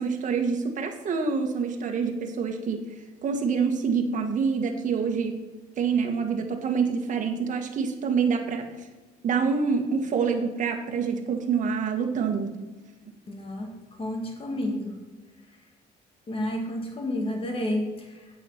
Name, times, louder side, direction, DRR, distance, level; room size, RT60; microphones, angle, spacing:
voice 1, 0.0-2.8 3.2-5.4 5.8-8.7 9.2-12.5, right 5 dB, 50° right, 3 dB, 1.7 m, -26 dB
voice 2, 13.3-15.0 16.3-18.3, left 1 dB, 35° left, 2 dB, 2.2 m, -31 dB
8.3 x 7.5 x 5.8 m, 1.3 s
cardioid pair, 110°, 17 cm